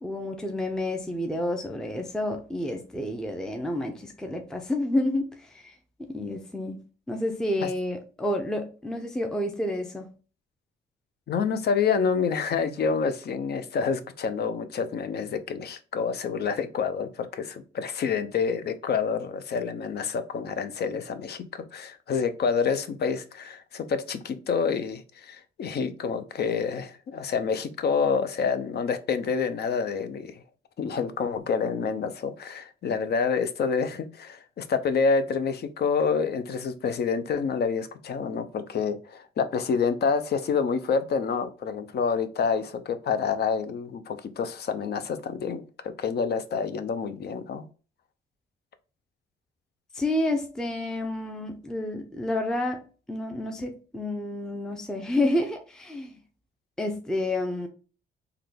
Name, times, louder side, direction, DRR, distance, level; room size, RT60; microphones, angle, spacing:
voice 1, 0.0-5.8 6.1-6.8 7.1-10.1 49.9-52.8 53.1-56.2 56.8-57.7, left 1 dB, 5° left, 0.5 m, -29 dB
voice 2, 11.3-30.4 30.8-47.6, left 5 dB, 55° left, 0.5 m, -28 dB
3.7 x 2.2 x 3.3 m
cardioid pair, 85°, 20 cm